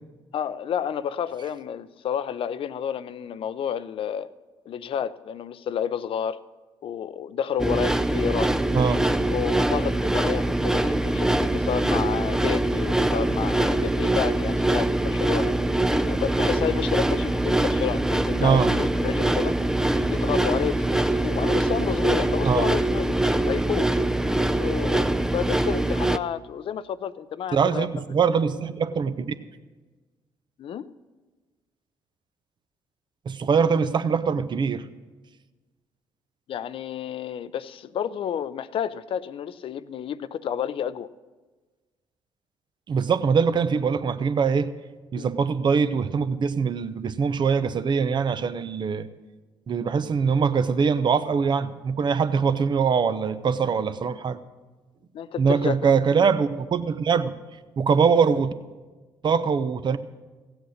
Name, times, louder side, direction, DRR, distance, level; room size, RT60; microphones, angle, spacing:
voice 1, 0.3-4.3 4.7-6.4 6.8-8.5 9.0-9.1 9.3-15.5 16.0-19.5 20.0-23.9 24.6-27.9 30.6-30.9 36.5-41.1 45.1-45.3 55.1-56.0, left 9 dB, 60° left, 15 dB, 0.5 m, -30 dB
sound 1, 7.6-26.2, right 1 dB, 5° right, 0.5 m, -23 dB
voice 2, 8.7-9.0 18.4-18.7 22.4-22.7 27.5-29.2 33.3-34.8 42.9-44.7 45.1-49.1 49.7-54.4 55.4-57.3 57.8-58.5 59.2-60.0, right 6 dB, 45° right, 12 dB, 0.8 m, -23 dB
16.0 x 8.1 x 6.4 m, 1.3 s
supercardioid pair, 60°, 10 cm